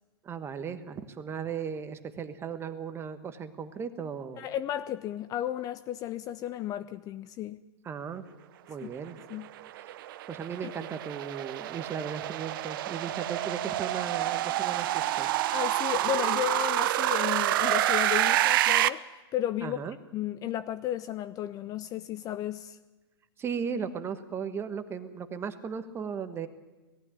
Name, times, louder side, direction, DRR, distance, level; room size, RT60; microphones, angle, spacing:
voice 1, 0.2-4.5 7.8-8.2 8.7-9.2 9.7-10.0 10.3-15.3 19.6-20.0 23.4-26.5, right 6 dB, 20° right, 1.3 m, -36 dB
voice 2, 4.4-7.6 8.8-8.9 9.3-9.5 15.5-19.1 19.3-19.8 20.1-22.8, left 12 dB, 25° left, 0.5 m, -33 dB
sound 1, 9.3-18.9, right 14 dB, 55° right, 0.8 m, -28 dB
18.5 x 15.0 x 9.9 m
hypercardioid pair, 140°, 13 cm